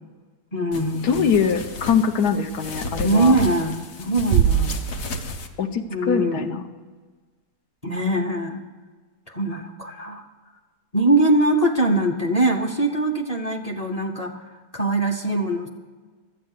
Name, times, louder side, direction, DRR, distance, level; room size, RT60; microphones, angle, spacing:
voice 1, 0.5-1.3 3.0-4.8 5.9-6.6 7.8-8.6 9.3-10.3 10.9-14.4 14.7-15.7, right 2 dB, 35° left, 2 dB, 0.7 m, -22 dB
sound 1, 0.7-5.5, left 2 dB, 60° left, 1.3 m, -34 dB
voice 2, 1.0-3.3 5.6-6.6, left 6 dB, 85° left, 7 dB, 1.3 m, -22 dB
Bass drum, 4.3-5.8, right 10 dB, 70° right, 0.9 m, -22 dB
12.0 x 8.5 x 6.5 m, 1.4 s
omnidirectional pair, 1.7 m